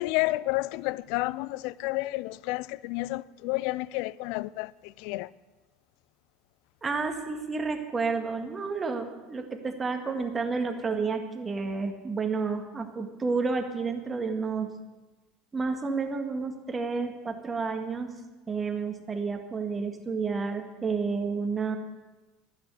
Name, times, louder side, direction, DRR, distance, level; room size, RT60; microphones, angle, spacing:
voice 1, 0.0-5.3, left 20 dB, 65° left, 0.3 m, -30 dB
voice 2, 6.8-14.7 15.5-18.1 18.5-21.8, right 4 dB, 25° right, 1.8 m, -30 dB
12.0 x 9.3 x 7.8 m
hypercardioid pair, 75°, 0 cm